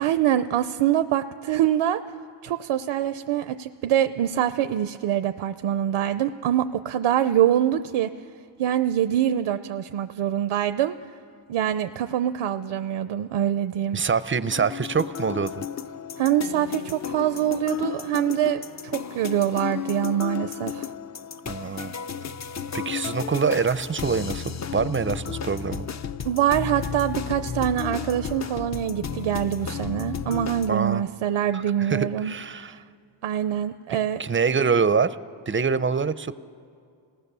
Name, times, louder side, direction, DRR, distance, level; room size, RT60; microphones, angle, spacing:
voice 1, 0.0-2.0 2.4-8.1 8.6-11.0 11.5-14.0 16.2-20.9 26.2-32.8 33.2-34.2, right 11 dB, 80° right, 10 dB, 0.6 m, -24 dB
voice 2, 13.9-15.6 21.5-21.9 22.7-24.4 24.7-25.9 30.7-31.0 31.5-32.7 34.2-35.2 35.5-36.4, right 5 dB, 25° right, 14 dB, 0.4 m, -25 dB
sound 1, 14.5-30.7, left 7 dB, 35° left, 0.5 m, -33 dB
28.0 x 18.0 x 6.8 m, 2.3 s
wide cardioid pair, 120°, 49 cm